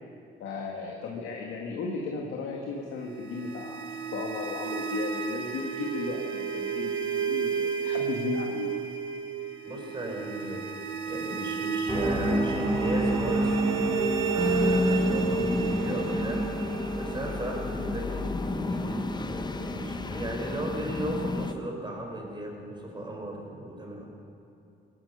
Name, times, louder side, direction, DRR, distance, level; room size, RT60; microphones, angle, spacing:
voice 1, 0.4-8.7, left 4 dB, 80° left, -1 dB, 1.8 m, -35 dB
sound 1, 3.0-18.0, right 7 dB, 75° right, 1.3 m, -32 dB
voice 2, 9.6-10.8 11.1-13.6 14.3-16.4 16.9-24.1, right 1 dB, 25° right, 0 dB, 4.6 m, -36 dB
sound 2, 11.9-20.7 21.0-21.1, right 1 dB, ahead, 3.8 m, -31 dB
sound 3, 14.4-21.5, left 3 dB, 20° left, 0.7 m, -31 dB
17.5 x 12.0 x 6.9 m, 2.7 s
cardioid pair, 90°, 20 cm